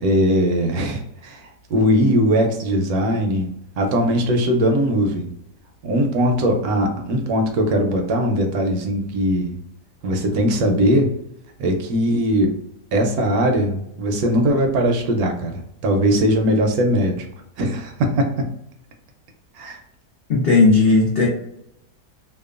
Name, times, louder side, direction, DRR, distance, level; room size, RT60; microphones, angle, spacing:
voice 1, 0.0-3.5 3.8-5.3 5.8-9.6 10.0-11.1 11.6-12.6 12.9-17.3 17.6-18.5 19.5-19.8, equal, 70° right, 3 dB, 1.0 m, -20 dB
voice 2, 20.3-21.3, left 3 dB, 85° left, -3 dB, 0.5 m, -15 dB
2.8 x 2.1 x 2.4 m, 0.75 s
omnidirectional pair, 1.8 m